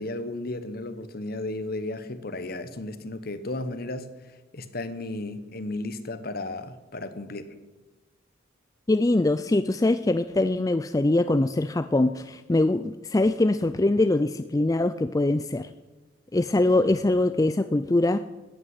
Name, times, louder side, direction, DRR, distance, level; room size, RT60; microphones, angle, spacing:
voice 1, 0.0-4.1 4.5-7.5, left 2 dB, 50° left, 11 dB, 1.3 m, -34 dB
voice 2, 8.9-15.7 16.3-18.2, left 2 dB, 20° left, 11 dB, 0.4 m, -23 dB
14.0 x 9.2 x 9.6 m, 1.1 s
head